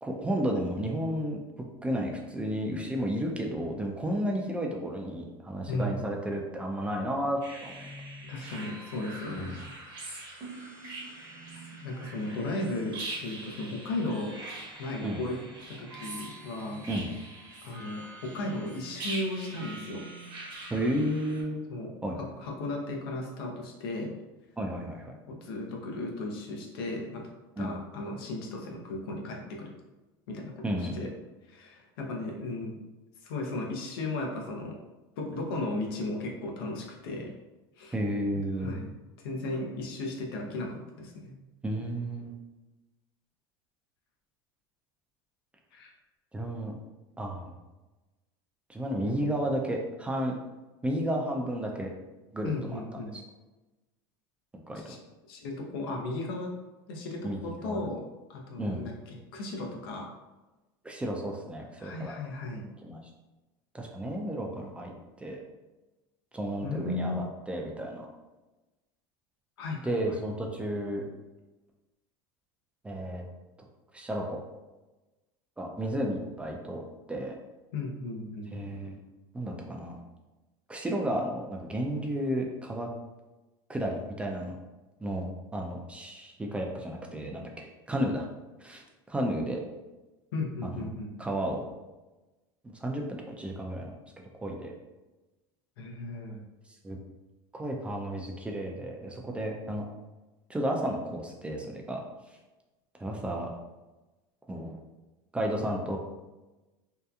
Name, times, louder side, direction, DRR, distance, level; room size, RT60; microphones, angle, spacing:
voice 1, 0.0-1.4 1.8-7.9 8.4-8.5 9.3-9.6 15.0-15.2 16.9-17.1 20.7-21.6 22.0-22.2 24.6-25.1 27.6-27.8 30.6-31.1 37.9-38.8 41.6-42.3 46.3-46.7 47.2-47.5 48.7-50.3 50.8-51.9 52.3-53.2 54.7-54.8 57.2-57.9 58.6-58.8 60.8-62.1 62.8-63.0 63.7-64.9 65.2-65.4 66.3-68.1 69.8-71.0 72.8-73.3 73.9-74.4 75.6-76.8 77.1-77.3 78.5-79.0 79.3-80.0 80.7-82.9 83.7-84.6 85.0-88.3 88.6-89.6 90.6-90.9 91.2-91.6 92.6-94.0 94.4-94.7 96.8-97.0 97.5-99.9 100.5-102.0 103.0-103.5 104.5-104.8 105.3-106.0, right 1 dB, 10° right, 0 dB, 0.3 m, -32 dB
voice 2, 5.7-6.0 8.3-9.6 11.8-13.0 13.2-14.3 14.8-15.4 15.7-16.9 17.6-20.0 21.7-21.9 22.2-24.1 25.3-27.2 27.6-29.7 30.3-31.1 31.5-32.8 33.2-34.8 35.2-37.3 37.8-37.9 38.6-38.9 39.2-41.3 45.7-45.9 52.4-53.1 54.8-55.0 55.3-56.5 56.9-58.0 58.3-60.1 61.8-62.6 66.6-67.2 69.6-70.0 77.7-78.5 90.3-91.1 95.8-96.4, left 2 dB, 85° left, 1 dB, 0.6 m, -35 dB
sound 1, 7.4-21.4, right 2 dB, 40° right, 0.9 m, -43 dB
2.7 x 2.3 x 2.3 m, 1.1 s
supercardioid pair, 120°, 12 cm